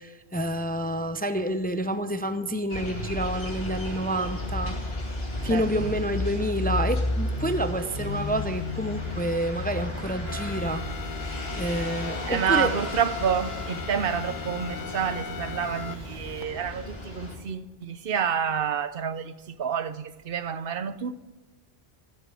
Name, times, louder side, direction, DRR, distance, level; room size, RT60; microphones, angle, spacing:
voice 1, 0.0-4.8 5.4-10.8 11.6-12.7, right 1 dB, 10° left, 0.5 m, -28 dB
sound 1, 2.7-17.4, left 2 dB, 70° left, 2.9 m, -33 dB
voice 2, 5.5-5.9 12.3-21.1, right 7 dB, 65° right, 0.9 m, -29 dB
sound 2, 10.3-16.4, left 5 dB, 55° left, 1.0 m, -38 dB
14.0 x 8.2 x 9.0 m
omnidirectional pair, 1.1 m